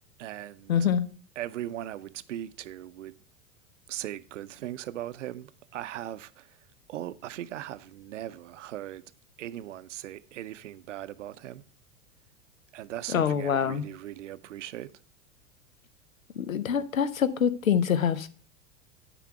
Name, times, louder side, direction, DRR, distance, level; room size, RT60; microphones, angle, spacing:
voice 1, 0.2-0.8 1.4-3.1 3.9-6.6 6.9-9.0 9.4-11.6 12.7-14.9, right 12 dB, 65° right, 0.6 m, -39 dB
voice 2, 0.7-1.0 13.1-13.8 16.3-18.3, left 8 dB, 80° left, 0.8 m, -25 dB
9.1 x 4.1 x 5.6 m
figure-of-eight pair, 90°, 40 cm